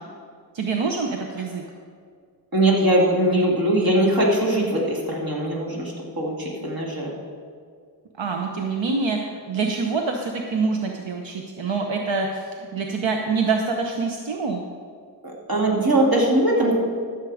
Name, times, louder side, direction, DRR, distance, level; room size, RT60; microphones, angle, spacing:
voice 1, 0.5-1.6 8.2-9.2 9.5-14.6, right 4 dB, 85° right, 2 dB, 0.9 m, -25 dB
voice 2, 2.5-7.1 15.2-16.7, right 1 dB, 50° right, -3 dB, 2.7 m, -21 dB
13.0 x 7.4 x 5.0 m, 2.1 s
wide cardioid pair, 70°, 44 cm